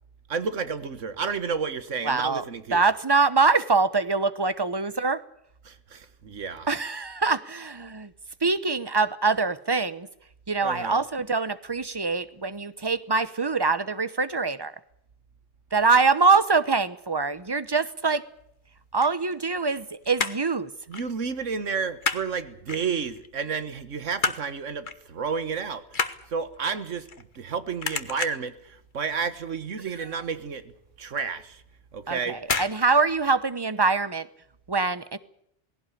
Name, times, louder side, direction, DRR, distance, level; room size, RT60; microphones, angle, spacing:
voice 1, 0.3-2.9 5.6-6.7 10.6-11.0 20.9-26.0 26.3-27.1 27.4-30.7 31.0-31.6 31.9-32.4, right 5 dB, 90° right, 12 dB, 1.7 m, -31 dB
voice 2, 2.0-2.4 2.7-5.2 6.7-8.1 8.4-10.1 10.5-14.7 15.7-18.2 18.9-20.7 32.1-34.3 34.7-35.2, right 4 dB, 20° right, 15 dB, 0.9 m, -24 dB
sound 1, 18.8-19.8 20.0-20.5 20.9-21.1 21.4-22.3 22.7-23.3 23.7-24.5 24.9-25.1 25.4-27.5 27.8-28.6 29.0-29.3 29.6-29.7 30.0-30.1 30.6-30.7 31.5-31.8 32.4-32.8 33.0-33.1, left 4 dB, 45° left, 1.4 m, -30 dB
19.0 x 17.0 x 10.0 m, 0.73 s
omnidirectional pair, 1.2 m